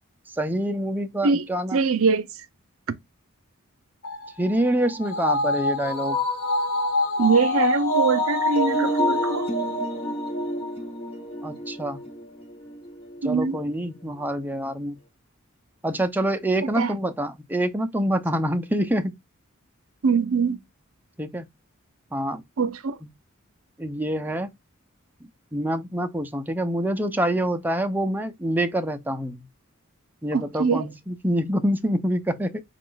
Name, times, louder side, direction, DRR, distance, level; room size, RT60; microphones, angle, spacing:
voice 1, 0.4-1.8 4.4-6.2 11.4-12.0 13.2-15.0 15.8-19.1 21.2-21.5 22.1-22.4 23.8-24.5 25.5-29.4 30.2-32.6, right 1 dB, 10° right, 0.4 m, -26 dB
voice 2, 1.2-2.3 2.9-3.0 7.2-9.5 13.2-13.6 16.6-16.9 20.0-20.6 22.6-23.0 30.3-30.9, right 5 dB, 70° right, 0.5 m, -23 dB
sound 1, 4.0-10.7 11.0-11.1, left 2 dB, 45° left, 1.9 m, -26 dB
sound 2, 8.6-14.4, right 1 dB, 25° left, 0.9 m, -32 dB
5.0 x 2.4 x 3.8 m
head